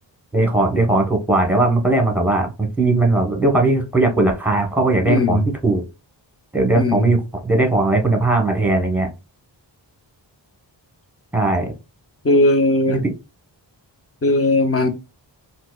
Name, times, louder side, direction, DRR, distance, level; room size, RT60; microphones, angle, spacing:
voice 1, 0.3-5.8 6.5-9.1 11.3-11.7 12.9-13.1, right 2 dB, 5° right, 1.0 m, -18 dB
voice 2, 5.1-5.5 6.7-7.1 12.2-13.0 14.2-14.9, left 2 dB, 30° left, 0.6 m, -17 dB
4.5 x 2.1 x 2.3 m
wide cardioid pair, 70°, 45 cm